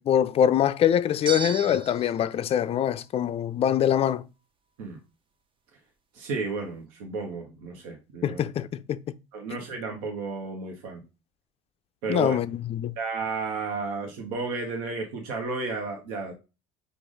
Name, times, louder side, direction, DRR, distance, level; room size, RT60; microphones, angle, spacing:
voice 1, 0.0-4.3 8.2-9.0 12.1-12.9, left 10 dB, 35° left, 0.4 m, -24 dB
sound 1, 1.2-2.2, right 5 dB, 30° right, 0.6 m, -34 dB
voice 2, 6.1-8.4 9.3-11.0 12.0-12.4 13.0-16.3, right 4 dB, 70° right, 1.1 m, -32 dB
4.8 x 2.5 x 3.9 m
hypercardioid pair, 70°, 17 cm